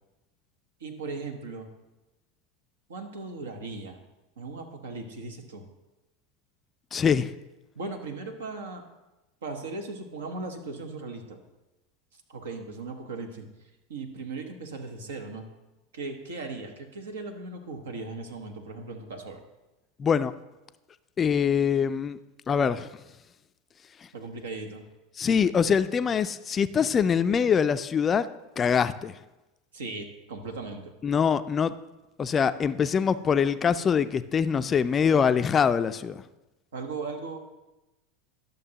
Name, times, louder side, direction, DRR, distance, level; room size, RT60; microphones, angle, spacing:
voice 1, 0.8-1.7 2.9-4.0 4.4-5.7 7.7-8.8 9.4-11.4 12.3-13.5 13.9-15.5 15.9-19.4 24.1-24.8 29.7-30.9 36.7-37.4, right 3 dB, 80° right, 4 dB, 1.0 m, -37 dB
voice 2, 6.9-7.3 20.0-20.3 21.2-22.2 22.5-22.9 25.2-28.3 28.6-29.1 31.0-31.7 32.2-36.2, left 7 dB, 30° left, 13 dB, 0.3 m, -24 dB
11.5 x 6.6 x 2.9 m, 1.0 s
hypercardioid pair, 90°, 0 cm